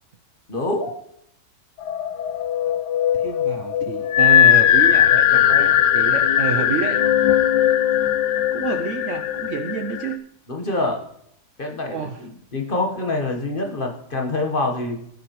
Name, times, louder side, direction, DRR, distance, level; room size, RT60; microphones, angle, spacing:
voice 1, 0.5-0.9 10.5-11.0 11.6-15.0, left 2 dB, 35° left, 3 dB, 1.2 m, -25 dB
sound 1, 1.8-10.1, left 11 dB, 85° left, 1.2 m, -18 dB
voice 2, 3.1-7.0 8.5-10.2 11.9-12.3, right 7 dB, 65° right, 8 dB, 0.8 m, -28 dB
18.0 x 7.8 x 3.0 m, 0.73 s
omnidirectional pair, 1.7 m